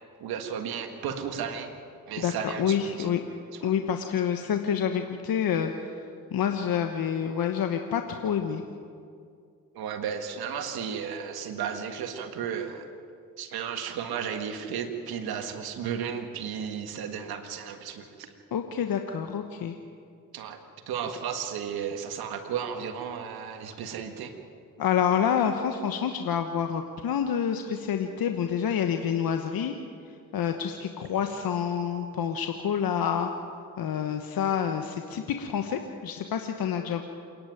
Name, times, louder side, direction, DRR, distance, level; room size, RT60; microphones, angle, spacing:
voice 1, 0.2-1.7 2.1-3.1 3.5-3.7 9.7-12.9 13.4-18.3 20.3-20.6 20.9-24.3, right 7 dB, 90° right, 6 dB, 1.8 m, -34 dB
voice 2, 2.2-3.2 3.6-5.7 6.3-8.6 18.5-19.8 24.8-29.7 30.3-33.3 33.8-37.0, left 8 dB, 75° left, 6 dB, 1.2 m, -28 dB
28.0 x 10.5 x 9.2 m, 2.4 s
supercardioid pair, 55°, 36 cm